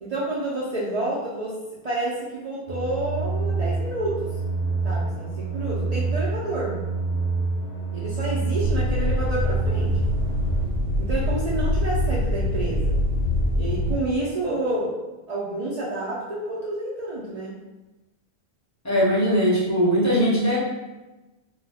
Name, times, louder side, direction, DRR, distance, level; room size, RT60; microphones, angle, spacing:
voice 1, 0.0-1.6 1.8-4.3 4.8-6.8 7.9-9.9 11.0-13.0 13.6-15.0 15.3-17.6, right 2 dB, 55° right, -7 dB, 0.5 m, -29 dB
sound 1, 2.7-10.6, right 3 dB, 50° left, 0.7 m, -27 dB
sound 2, 8.6-13.9, left 1 dB, 75° right, 0.8 m, -24 dB
voice 2, 18.8-20.6, equal, 20° left, -7 dB, 0.6 m, -20 dB
2.3 x 2.1 x 3.3 m, 1.1 s
omnidirectional pair, 1.1 m